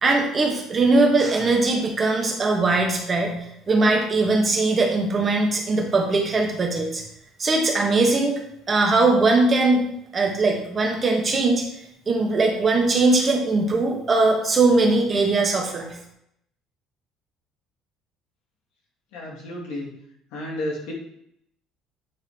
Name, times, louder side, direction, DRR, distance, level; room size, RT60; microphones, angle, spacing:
voice 1, 0.0-7.0 7.4-8.4 8.7-9.8 10.1-11.6 12.1-15.9, right 3 dB, 20° right, 1 dB, 1.1 m, -20 dB
voice 2, 19.1-19.9 20.3-20.9, left 1 dB, 85° left, -3 dB, 2.2 m, -31 dB
8.6 x 3.7 x 3.3 m, 0.75 s
cardioid pair, 165°, 0 cm